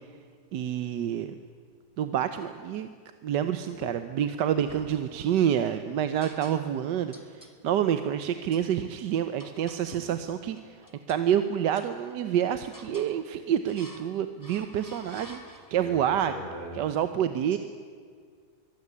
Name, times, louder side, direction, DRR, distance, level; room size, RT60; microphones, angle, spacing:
voice 1, 0.5-1.3 2.0-2.9 3.2-10.8 11.1-16.3 16.7-17.6, right 9 dB, 85° right, 10 dB, 1.5 m, -28 dB
sound 1, 3.7-4.3 4.7-5.6 6.2-6.9 7.1-7.6 8.2-8.7 9.4-10.1 10.5-11.3 11.7-12.3 12.7-13.2 13.7-14.1 14.4-15.9, left 1 dB, 10° left, 1.8 m, -49 dB
voice 2, 15.7-16.8, equal, 30° left, 0 dB, 3.8 m, -40 dB
24.0 x 16.5 x 9.7 m, 2.1 s
omnidirectional pair, 1.8 m